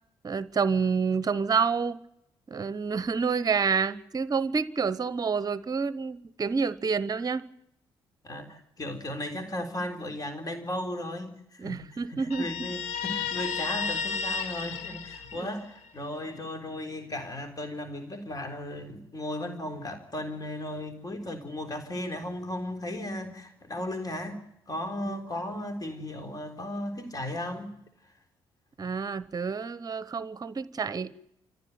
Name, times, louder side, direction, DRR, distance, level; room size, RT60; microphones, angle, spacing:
voice 1, 0.2-2.0 2.5-7.4 11.6-12.7 25.1-25.2 28.8-31.1, right 5 dB, 35° right, 1.0 m, -28 dB
voice 2, 8.2-24.4 24.7-27.7, left 1 dB, 30° left, 3.8 m, -36 dB
Guitar, 12.3-15.9, left 6 dB, 65° left, 1.5 m, -33 dB
27.5 x 15.0 x 9.5 m
figure-of-eight pair, 40°, 12 cm